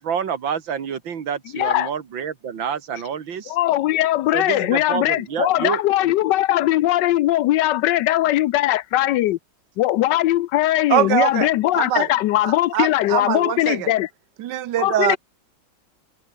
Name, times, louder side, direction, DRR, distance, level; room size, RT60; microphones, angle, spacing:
voice 1, 0.0-3.6 4.3-6.1, right 7 dB, 90° right, 2.6 m, -28 dB
voice 2, 1.5-1.9 3.5-9.4 9.8-14.1 14.8-15.2, left 14 dB, 75° left, 1.2 m, -20 dB
voice 3, 10.9-11.5 11.7-12.1 12.4-13.9 14.4-15.2, right 12 dB, 75° right, 1.4 m, -22 dB
omnidirectional pair, 2.0 m